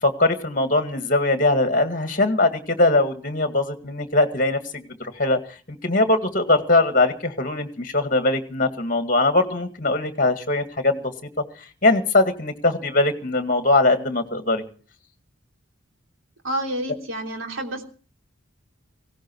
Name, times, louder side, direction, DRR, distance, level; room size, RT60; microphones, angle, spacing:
voice 1, 0.0-5.4 5.7-11.1 11.8-14.6, left 2 dB, 40° left, 8 dB, 2.0 m, -21 dB
voice 2, 16.4-17.8, right 1 dB, 75° right, 4 dB, 3.2 m, -29 dB
18.5 x 17.0 x 4.6 m, 0.40 s
head